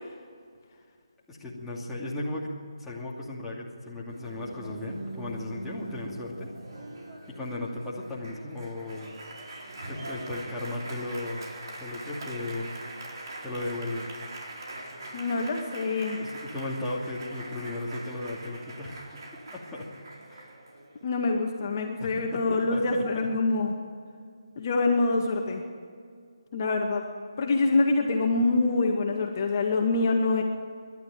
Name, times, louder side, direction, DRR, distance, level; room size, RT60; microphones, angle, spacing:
voice 1, 1.3-6.5 7.3-9.1 9.9-11.5 11.8-12.7 13.4-14.1 16.1-19.2 19.5-19.9 20.3-20.5 22.0-23.1, left 2 dB, 5° left, -6 dB, 2.5 m, -36 dB
Applause, 4.1-21.1, right 2 dB, 50° right, 4.1 m, -42 dB
voice 2, 15.1-16.2 21.0-23.7 24.6-25.6 26.5-27.0 27.4-30.4, left 3 dB, 35° left, 1 dB, 2.0 m, -25 dB
29.0 x 12.0 x 9.1 m, 2.2 s
figure-of-eight pair, 150°, 3 cm